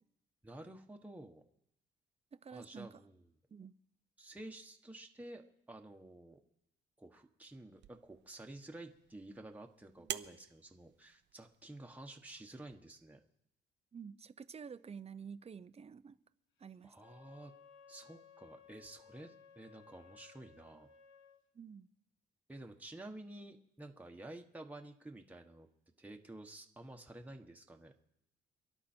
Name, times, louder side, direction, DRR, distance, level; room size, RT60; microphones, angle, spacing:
voice 1, 0.4-1.4 2.5-3.2 4.2-6.4 7.0-13.2 16.8-17.5 17.9-20.9 22.5-25.7 26.0-27.9, right 1 dB, 5° right, 2 dB, 1.3 m, -51 dB
voice 2, 2.3-2.9 3.5-3.7 10.0-10.1 13.9-16.2 16.6-16.9 21.5-21.9, right 6 dB, 30° right, 14 dB, 0.7 m, -50 dB
sound 1, 7.8-12.8, right 10 dB, 65° right, 0.7 m, -50 dB
Wind instrument woodwind instrument, 16.9-21.4, left 6 dB, 75° left, 1.3 m, -60 dB
28.0 x 11.0 x 4.5 m, 0.82 s
cardioid pair, 90°, 20 cm